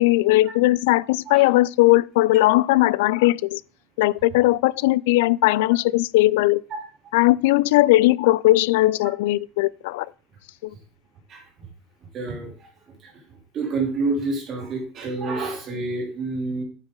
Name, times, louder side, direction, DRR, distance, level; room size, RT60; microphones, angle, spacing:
voice 1, 0.0-3.6 4.0-6.6 7.1-10.1 10.6-10.7, left 18 dB, 85° left, 0.3 m, -18 dB
voice 2, 12.1-12.5 13.0-13.1 13.5-16.6, right 3 dB, 30° right, 3.1 m, -28 dB
9.1 x 8.0 x 3.8 m
cardioid pair, 170°, 0 cm